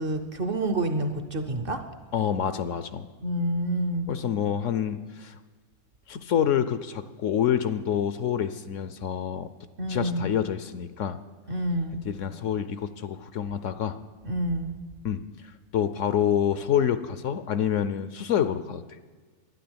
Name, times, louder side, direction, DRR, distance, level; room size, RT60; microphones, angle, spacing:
voice 1, 0.0-1.8 3.2-4.1 9.8-10.4 11.5-12.1 14.2-14.8, right 1 dB, 45° right, 9 dB, 0.9 m, -28 dB
voice 2, 2.1-3.1 4.1-5.3 6.1-9.5 9.9-11.2 12.0-14.0 15.0-15.2 15.7-18.8, left 9 dB, 65° left, 12 dB, 0.9 m, -27 dB
12.0 x 9.9 x 8.6 m, 1.4 s
omnidirectional pair, 1.5 m